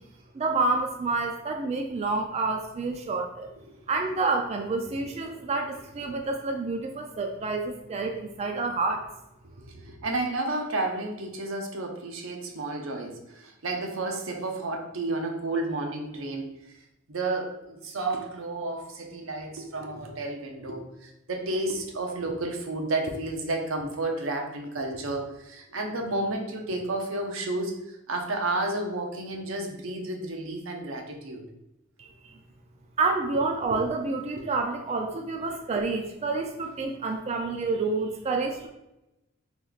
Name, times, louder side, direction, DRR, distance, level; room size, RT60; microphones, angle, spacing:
voice 1, 0.3-3.5 3.9-9.1 32.0-32.4 33.0-38.7, right 3 dB, 30° right, 3 dB, 0.3 m, -28 dB
voice 2, 9.6-16.5 17.1-31.4, right 2 dB, 85° right, 2 dB, 0.7 m, -31 dB
3.0 x 2.9 x 3.9 m, 0.90 s
head